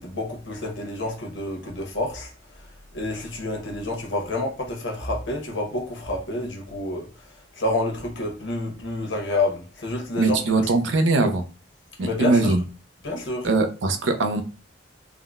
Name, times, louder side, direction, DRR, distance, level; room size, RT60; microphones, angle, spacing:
voice 1, 0.0-2.3 2.9-7.1 7.6-10.6 12.0-12.5 13.0-13.5, left 2 dB, 80° left, 0.9 m, -28 dB
voice 2, 10.2-11.4 12.0-12.6 13.4-14.4, right 3 dB, 80° right, 0.5 m, -21 dB
3.6 x 2.1 x 2.4 m
head